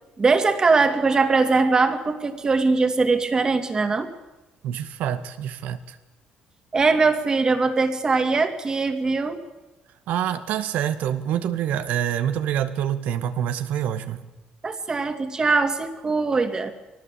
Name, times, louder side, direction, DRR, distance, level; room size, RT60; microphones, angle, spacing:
voice 1, 0.2-4.1 6.7-9.4 14.6-16.7, right 4 dB, 25° right, 7 dB, 2.8 m, -21 dB
voice 2, 4.6-6.0 10.1-14.2, right 10 dB, 80° right, 10 dB, 2.0 m, -26 dB
23.5 x 18.5 x 8.6 m, 1.1 s
cardioid pair, 120°, 3 cm